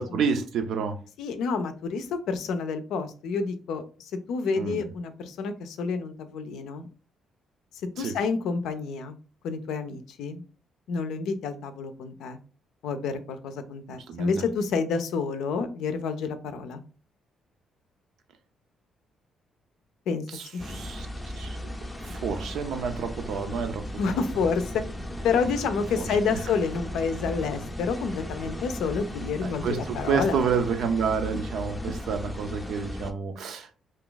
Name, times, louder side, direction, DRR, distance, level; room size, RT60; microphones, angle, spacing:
voice 1, 0.0-1.0 4.6-4.9 8.0-8.1 14.1-14.4 20.3-21.1 21.4-21.6 22.0-23.9 26.0-26.4 29.4-33.7, right 6 dB, 75° right, 0.5 m, -29 dB
voice 2, 1.2-6.9 8.0-9.2 9.4-10.4 10.9-12.4 12.8-16.8 20.1-20.2 20.5-20.6 24.0-24.8 25.2-30.4, left 5 dB, 85° left, 0.5 m, -29 dB
sound 1, 20.6-33.1, left 1 dB, 10° left, 0.5 m, -36 dB
2.6 x 2.4 x 3.8 m
cardioid pair, 90°, 0 cm